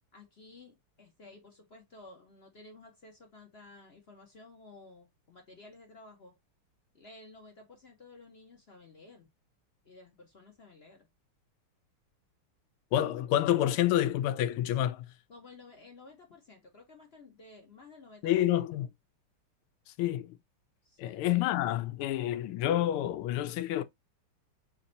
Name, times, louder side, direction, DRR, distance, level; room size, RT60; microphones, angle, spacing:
voice 1, 0.1-6.4 6.9-9.3 9.8-11.1 15.3-18.6 20.8-21.2, left 3 dB, 50° left, 0.7 m, -54 dB
voice 2, 12.9-15.1 18.2-18.9 20.0-20.3 21.0-23.8, left 12 dB, 85° left, 1.5 m, -28 dB
4.4 x 2.9 x 3.8 m
omnidirectional pair, 2.4 m